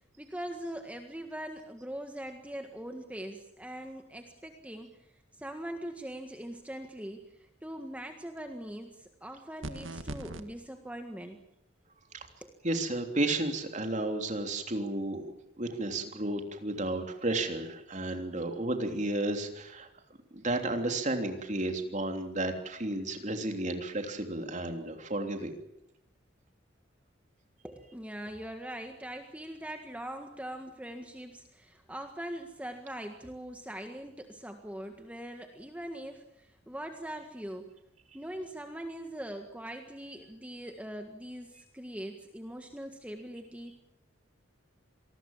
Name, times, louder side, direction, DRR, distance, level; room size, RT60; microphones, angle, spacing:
voice 1, 0.2-11.4 12.4-12.6 27.6-37.7 38.1-43.8, right 1 dB, 5° right, 4 dB, 1.7 m, -42 dB
sound 1, 9.6-10.4, right 1 dB, 90° right, 1.9 m, -39 dB
voice 2, 12.6-15.3 15.6-19.9 20.3-25.6, right 2 dB, 40° right, 5 dB, 3.3 m, -32 dB
26.5 x 20.0 x 7.4 m, 0.83 s
head